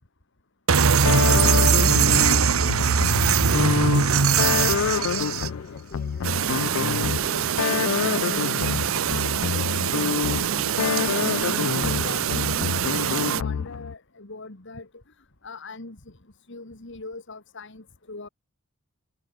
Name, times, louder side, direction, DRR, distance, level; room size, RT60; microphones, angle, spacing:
sound 1, 0.7-5.5, right 6 dB, 85° right, 1.0 m, -20 dB
sound 2, 1.0-13.9, left 7 dB, 90° left, 0.4 m, -27 dB
voice 1, 4.4-9.1 9.4-11.2, left 2 dB, 45° left, 6.4 m, -46 dB
Chirp tweet, 6.2-13.4, right 9 dB, 70° right, 0.6 m, -26 dB
voice 2, 11.8-15.0 15.4-16.2 16.5-18.3, left 3 dB, 60° left, 2.3 m, -41 dB
head